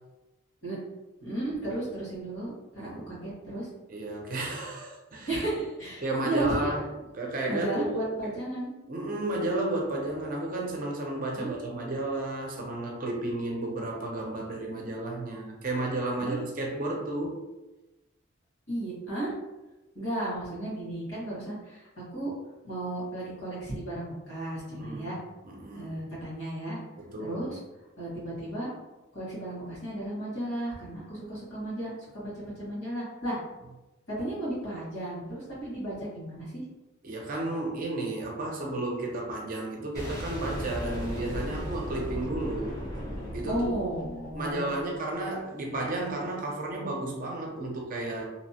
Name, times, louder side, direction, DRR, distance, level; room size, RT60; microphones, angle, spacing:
voice 1, 1.2-3.7 5.3-6.7 7.5-8.7 11.3-11.5 16.2-16.4 18.7-19.3 19.9-22.3 22.6-25.2 25.7-26.8 27.2-27.6 28.0-28.7 29.1-33.4 34.1-36.6 43.5-44.7, right 1 dB, 75° left, -7 dB, 1.5 m, -34 dB
voice 2, 2.8-3.1 3.9-5.4 6.0-6.8 7.1-8.1 8.9-17.5 24.7-25.1 25.4-25.9 27.0-27.4 37.0-42.8 43.3-43.9 44.4-48.2, right 2 dB, 40° right, -1 dB, 0.5 m, -32 dB
Boom, 39.9-44.8, equal, 20° left, 0.6 m, -36 dB
2.7 x 2.0 x 2.8 m, 1.1 s
head